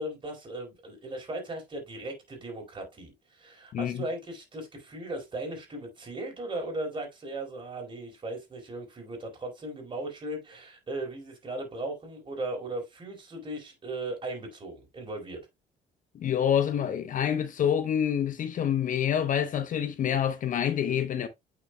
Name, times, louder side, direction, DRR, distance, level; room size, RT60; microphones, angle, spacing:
voice 1, 0.0-15.4, right 2 dB, 30° right, 4.2 m, -37 dB
voice 2, 3.7-4.0 16.1-21.3, left 9 dB, 50° left, 0.8 m, -27 dB
8.8 x 5.9 x 2.2 m
cardioid pair, 110°, 17 cm